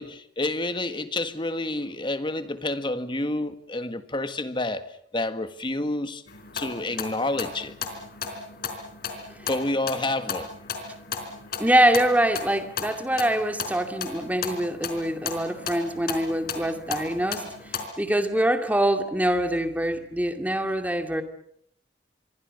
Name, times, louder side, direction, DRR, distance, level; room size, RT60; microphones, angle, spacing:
voice 1, 0.0-6.2 6.5-7.7 9.5-10.5, left 2 dB, 25° left, 1.6 m, -29 dB
sound 1, 6.3-17.8, left 5 dB, 60° left, 4.3 m, -35 dB
voice 2, 11.6-17.4 18.0-21.2, right 1 dB, 10° right, 2.4 m, -24 dB
27.0 x 24.0 x 6.6 m
head